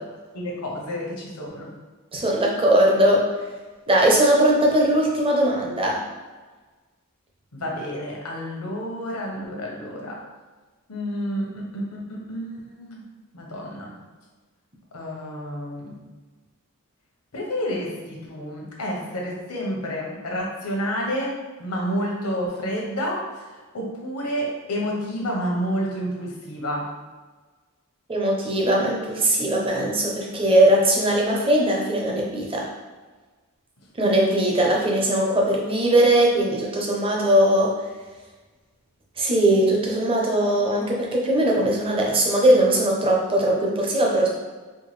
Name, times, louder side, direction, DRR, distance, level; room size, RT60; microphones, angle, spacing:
voice 1, 0.3-1.7 7.5-10.2 10.9-13.0 13.3-13.9 14.9-16.0 17.3-23.3 23.7-26.9 34.0-34.2, equal, 80° left, -2 dB, 0.9 m, -29 dB
voice 2, 2.1-3.3 3.9-6.0 28.1-32.7 34.0-37.7 39.2-44.3, right 1 dB, 25° right, -1 dB, 0.7 m, -20 dB
4.5 x 2.2 x 3.2 m, 1.3 s
head